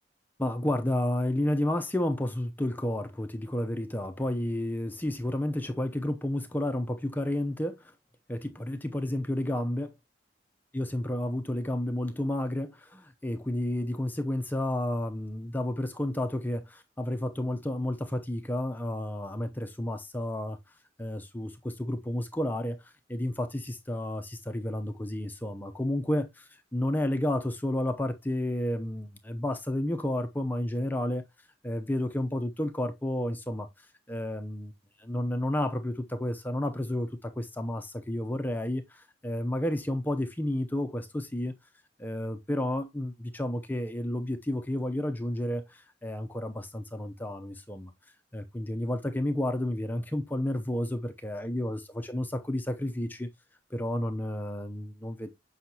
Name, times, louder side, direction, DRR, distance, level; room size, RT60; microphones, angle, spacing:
voice 1, 0.4-7.9 8.3-9.9 10.7-31.2 31.6-34.7 35.0-41.5 42.0-47.9 48.3-51.8 52.1-53.3 53.7-55.3, left 1 dB, 10° left, 0.6 m, -31 dB
7.7 x 5.6 x 2.8 m
head